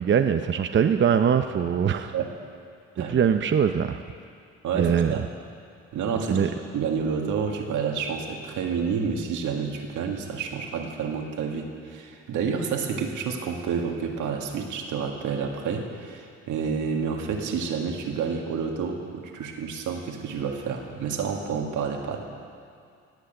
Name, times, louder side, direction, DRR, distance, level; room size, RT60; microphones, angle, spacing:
voice 1, 0.0-2.1 3.0-4.0 4.8-5.1 6.3-6.5, right 7 dB, 40° right, 7 dB, 0.6 m, -22 dB
voice 2, 4.6-5.2 5.9-6.4 6.7-22.2, right 6 dB, 80° right, 2 dB, 1.9 m, -29 dB
17.5 x 8.3 x 7.8 m, 2.4 s
cardioid pair, 90°, 30 cm